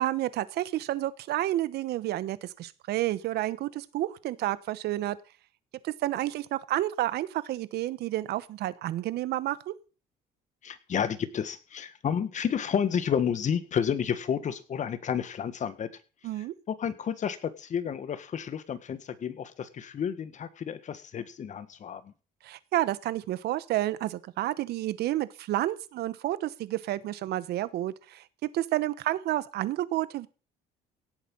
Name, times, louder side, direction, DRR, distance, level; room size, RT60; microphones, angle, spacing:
voice 1, 0.0-5.2 5.8-9.7 16.2-16.5 22.4-28.2 28.5-30.3, right 15 dB, 75° right, 17 dB, 1.1 m, -30 dB
voice 2, 10.6-15.9 16.7-22.1, left 8 dB, 45° left, 13 dB, 1.7 m, -31 dB
17.0 x 8.3 x 5.5 m, 0.35 s
cardioid pair, 110°, 17 cm